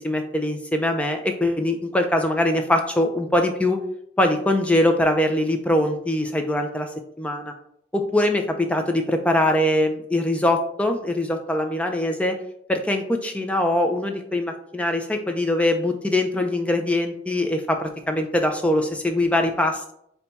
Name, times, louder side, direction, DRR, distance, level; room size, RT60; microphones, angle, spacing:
voice 1, 0.0-3.8 4.2-6.9 7.2-7.5 7.9-12.4 12.7-19.9, left 1 dB, 5° left, 4 dB, 0.3 m, -22 dB
4.3 x 2.2 x 3.9 m, 0.71 s
head